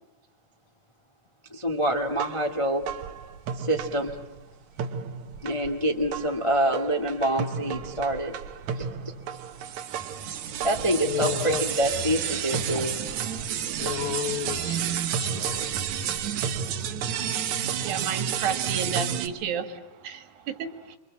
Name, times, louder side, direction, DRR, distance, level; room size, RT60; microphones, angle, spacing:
voice 1, 1.5-2.9 3.6-4.2 5.4-8.3 8.7-9.1 10.6-13.5, right 1 dB, 35° left, 0.4 m, -26 dB
sound 1, 2.1-4.4 4.8-19.3, right 8 dB, 65° right, 2.2 m, -31 dB
voice 2, 10.9-11.6 13.8-15.7, left 10 dB, 85° left, 3.0 m, -33 dB
voice 3, 17.8-19.7 20.0-20.2 20.6-21.0, right 7 dB, 85° right, 3.5 m, -30 dB
25.5 x 25.5 x 7.6 m
omnidirectional pair, 4.0 m